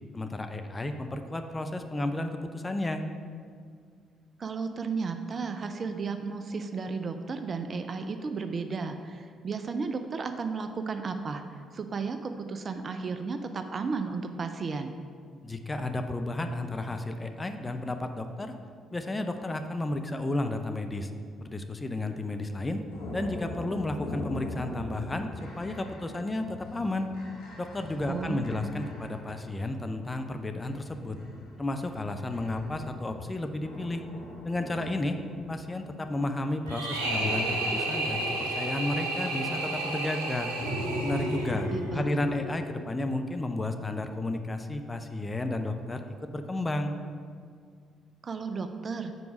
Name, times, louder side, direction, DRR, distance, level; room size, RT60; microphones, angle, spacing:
voice 1, 0.1-3.0 15.4-18.5 18.9-21.1 21.4-22.8 23.1-25.3 25.6-27.1 27.6-31.2 31.6-34.0 34.4-35.2 35.5-40.5 41.0-46.1 46.3-47.0, left 2 dB, 20° left, 7 dB, 0.5 m, -32 dB
voice 2, 4.4-14.9 28.1-28.7 41.7-42.4 48.2-49.1, right 4 dB, 40° right, 8 dB, 0.5 m, -34 dB
sound 1, 22.9-30.1 30.6-36.2 37.1-38.7 40.6-42.7, left 1 dB, 70° left, 1.1 m, -40 dB
sound 2, 36.7-41.8, right 2 dB, 85° right, 0.7 m, -32 dB
5.2 x 4.6 x 5.9 m, 2.1 s
figure-of-eight pair, 45°, 0 cm